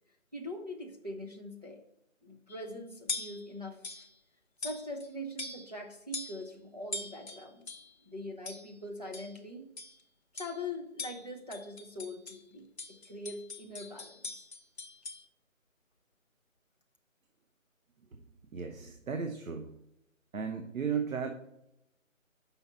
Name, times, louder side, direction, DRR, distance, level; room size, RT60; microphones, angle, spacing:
voice 1, 0.3-1.8 2.2-4.1 4.6-7.7 8.1-9.7 10.3-14.4, left 1 dB, 30° right, 1 dB, 0.6 m, -42 dB
sound 1, 2.5-2.7 3.1-3.5 3.8-4.1 4.6-5.1 5.4-5.8 6.1-6.4 6.9-7.9 8.5-8.8 9.1-9.4 9.8-10.0 10.4-10.6 11.0-12.4 12.8-15.2, left 3 dB, 55° left, 0.7 m, -42 dB
voice 2, 18.5-19.7 20.3-21.3, right 6 dB, 80° right, 6 dB, 0.9 m, -35 dB
5.8 x 5.5 x 4.3 m, 0.82 s
figure-of-eight pair, 175°, 41 cm